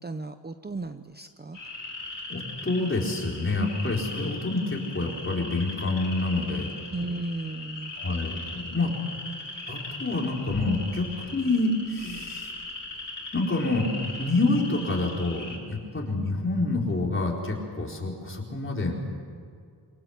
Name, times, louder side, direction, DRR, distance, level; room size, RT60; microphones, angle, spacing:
voice 1, 0.0-1.6 6.9-7.9, right 2 dB, 20° right, 9 dB, 0.7 m, -35 dB
sound 1, 1.5-15.6, left 2 dB, 45° left, 5.1 m, -39 dB
voice 2, 2.3-6.7 8.0-8.9 9.7-12.5 13.3-13.9 14.2-19.0, left 2 dB, 30° left, -1 dB, 4.8 m, -27 dB
27.0 x 24.0 x 8.2 m, 2.2 s
wide cardioid pair, 130°, 44 cm